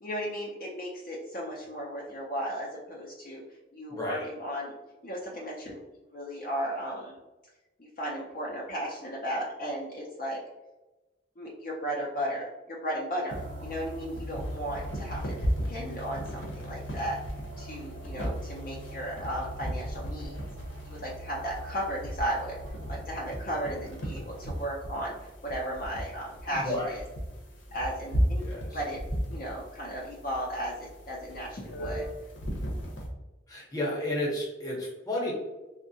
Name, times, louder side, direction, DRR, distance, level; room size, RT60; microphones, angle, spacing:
voice 1, 0.0-3.4 3.7-4.7 5.0-5.8 6.1-7.1 7.8-10.4 11.4-15.3 15.7-17.2 17.6-20.4 20.8-22.6 22.9-27.0 27.7-28.4 28.7-29.0 29.3-32.1, equal, 45° left, -4 dB, 0.4 m, -35 dB
voice 2, 3.9-4.2 26.5-26.9 28.4-28.7 33.5-35.3, left 1 dB, 20° left, -4 dB, 0.8 m, -32 dB
sound 1, 13.3-33.1, equal, 85° left, 0.9 m, -36 dB
sound 2, 13.3-24.6, right 1 dB, 55° right, 0.3 m, -44 dB
3.5 x 2.1 x 2.6 m, 1.1 s
head